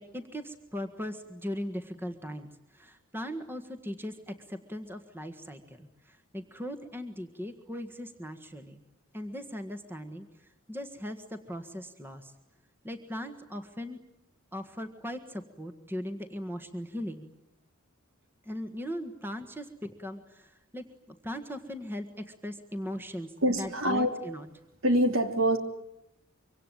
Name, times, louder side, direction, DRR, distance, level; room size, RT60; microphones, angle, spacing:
voice 1, 0.0-8.8 9.1-12.3 12.8-14.0 14.5-17.3 18.4-24.5, equal, 10° right, 8 dB, 1.6 m, -39 dB
voice 2, 23.4-24.1 24.8-25.6, right 1 dB, 65° right, 6 dB, 3.2 m, -24 dB
25.0 x 25.0 x 9.2 m, 0.85 s
head